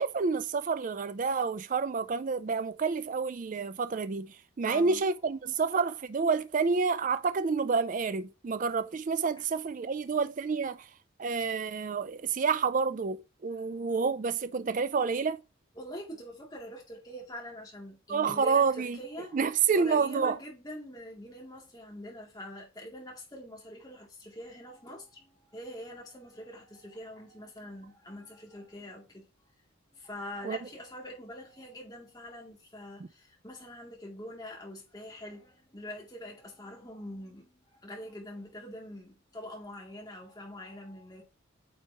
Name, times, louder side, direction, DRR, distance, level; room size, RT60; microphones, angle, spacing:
voice 1, 0.0-10.9 11.2-15.4 18.1-19.0 19.3-20.4 30.4-30.6, right 5 dB, 40° right, 0.4 m, -29 dB
voice 2, 4.6-5.0 5.5-5.6 9.9-10.0 13.7-14.0 15.8-19.5 19.7-29.2 29.9-41.2, left 1 dB, 20° left, 2.5 m, -44 dB
9.0 x 4.6 x 2.9 m
head